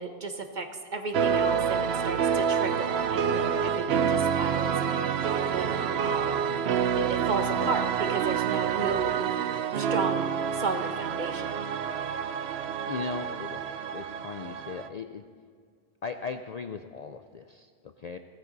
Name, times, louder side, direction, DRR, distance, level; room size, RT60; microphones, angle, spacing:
voice 1, 0.0-6.4 6.9-9.2 9.7-11.6, right 3 dB, 45° right, 5 dB, 1.2 m, -34 dB
sound 1, 1.1-14.9, right 7 dB, 70° right, 0.9 m, -28 dB
voice 2, 12.2-12.6 12.9-15.2 16.0-18.2, left 5 dB, 50° left, 8 dB, 0.5 m, -38 dB
16.5 x 14.5 x 4.0 m, 2.1 s
omnidirectional pair, 1.1 m